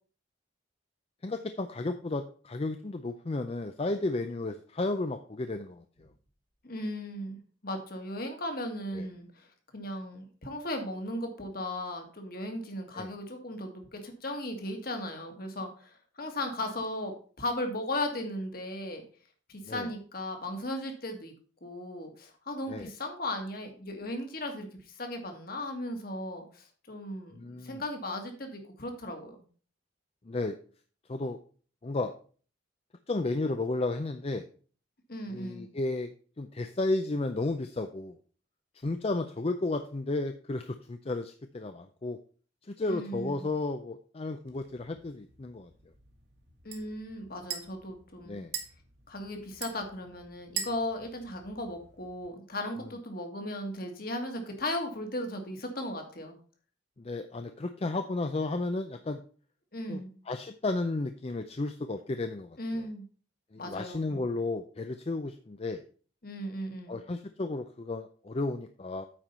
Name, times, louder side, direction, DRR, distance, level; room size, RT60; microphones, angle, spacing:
voice 1, 1.2-5.8 8.9-9.1 12.9-13.1 19.6-19.9 22.7-22.9 27.3-27.8 30.3-30.6 31.1-31.4 31.8-32.1 33.1-34.5 35.3-36.1 36.4-38.2 38.8-42.2 42.7-45.7 48.3-48.5 57.0-59.2 59.9-62.6 63.5-65.8 66.9-69.1, left 2 dB, 30° left, 8 dB, 0.5 m, -33 dB
voice 2, 6.6-9.5 9.7-19.0 19.5-21.3 21.6-24.7 25.0-29.4 35.1-35.7 42.8-43.5 46.6-48.4 49.1-56.4 59.7-60.1 62.6-63.1 63.6-64.3 66.2-67.0, left 1 dB, 50° left, 4 dB, 1.8 m, -37 dB
sound 1, 44.5-52.3, right 7 dB, 60° right, 1.7 m, -44 dB
8.9 x 4.6 x 5.5 m, 0.42 s
head